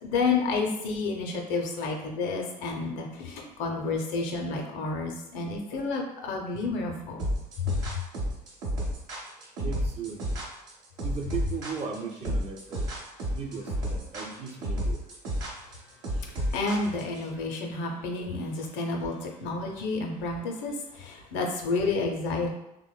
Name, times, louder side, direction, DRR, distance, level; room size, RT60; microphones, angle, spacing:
voice 1, 0.0-7.2 7.6-7.7 16.5-22.5, left 3 dB, 65° left, 1 dB, 0.5 m, -30 dB
sound 1, 7.2-17.2, equal, 70° right, 0.8 m, -31 dB
voice 2, 9.6-10.3 11.0-12.8 13.3-15.0 19.4-19.5, right 5 dB, 30° right, 2 dB, 0.5 m, -37 dB
2.9 x 2.1 x 2.2 m, 0.91 s
hypercardioid pair, 60°, 21 cm